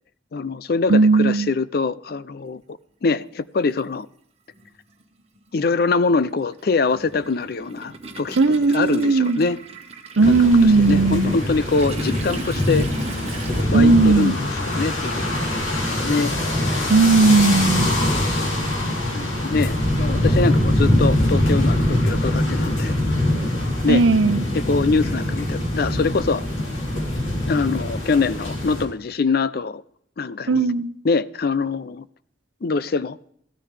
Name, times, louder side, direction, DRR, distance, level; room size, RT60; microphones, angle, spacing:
voice 1, 0.3-2.6 3.0-4.1 5.5-8.4 8.7-9.6 10.3-10.4 10.8-12.9 13.7-14.4 14.7-15.5 15.7-16.3 16.6-16.8 19.1-22.9 23.8-24.0 24.5-26.4 27.5-29.8 30.2-30.7 31.0-32.1 32.6-33.2, left 4 dB, 50° left, 18 dB, 0.4 m, -23 dB
voice 2, 0.9-1.5 8.4-9.4 10.2-11.4 13.7-14.3 16.9-17.9 23.9-24.4 30.5-30.9, right 3 dB, 80° right, 13 dB, 0.7 m, -16 dB
Toilet flush, 3.1-3.2 4.5-4.7 5.0-13.6, right 3 dB, 30° right, 1.5 m, -37 dB
sound 1, 10.2-28.9, left 1 dB, 90° left, 3.4 m, -23 dB
15.5 x 13.0 x 3.4 m, 0.69 s
head